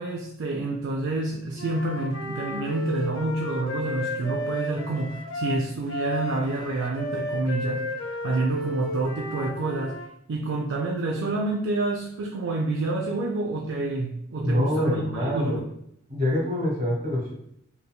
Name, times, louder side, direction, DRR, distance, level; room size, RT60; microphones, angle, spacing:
voice 1, 0.0-9.9 10.3-15.6, right 2 dB, 65° right, 0 dB, 0.4 m, -28 dB
Wind instrument woodwind instrument, 1.6-10.1, left 1 dB, 85° left, 0.6 m, -33 dB
voice 2, 14.4-15.6 16.1-17.3, left 1 dB, 45° right, -2 dB, 1.2 m, -25 dB
4.2 x 3.3 x 2.2 m, 0.72 s
head